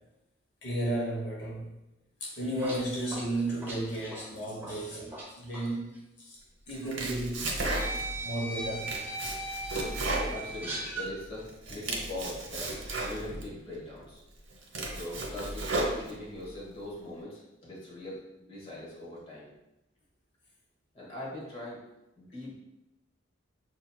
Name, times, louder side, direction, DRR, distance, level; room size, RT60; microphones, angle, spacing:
voice 1, 0.6-1.7 2.3-6.4 6.7-7.5 8.2-9.4 9.9-10.0, right 1 dB, 65° left, -5 dB, 1.1 m, -34 dB
sound 1, 2.2-5.3 5.5-5.7 6.8-6.9 7.8-11.1, right 2 dB, 10° right, 0.7 m, -38 dB
Domestic sounds home sounds, 6.7-8.2 8.6-11.1 11.5-13.5 14.0-14.1 14.5-16.5, right 2 dB, 85° right, 0.8 m, -34 dB
voice 2, 10.3-12.7 13.1-14.2 14.9-19.5 20.9-21.8 22.2-22.5, left 1 dB, 30° left, -6 dB, 1.2 m, -41 dB
5.9 x 2.8 x 2.3 m, 0.91 s
head